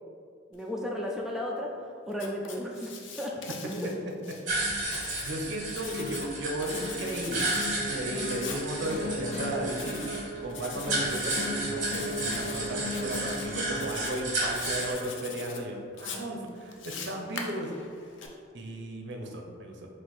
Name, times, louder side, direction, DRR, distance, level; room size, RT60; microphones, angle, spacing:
voice 1, 0.5-1.7 2.1-3.4 3.6-3.9 5.8-5.9, left 1 dB, 5° right, -2 dB, 0.3 m, -34 dB
Writing, 2.1-4.4 4.8-6.3 6.6-7.7 8.3-8.6 9.7-10.2 10.5-11.5 11.9-12.6 12.9-13.5 13.8-14.2 14.5-15.6 16.0-18.3, left 5 dB, 70° left, 0.5 m, -42 dB
sound 1, 4.5-14.9, right 2 dB, 40° right, 1.1 m, -33 dB
voice 2, 4.5-4.9 5.2-7.4 7.9-10.1 10.4-17.7 18.5-19.9, right 1 dB, 60° right, 1 dB, 0.6 m, -35 dB
sound 2, 5.9-13.9, left 1 dB, 35° left, 0.9 m, -37 dB
4.5 x 2.5 x 3.9 m, 2.3 s
head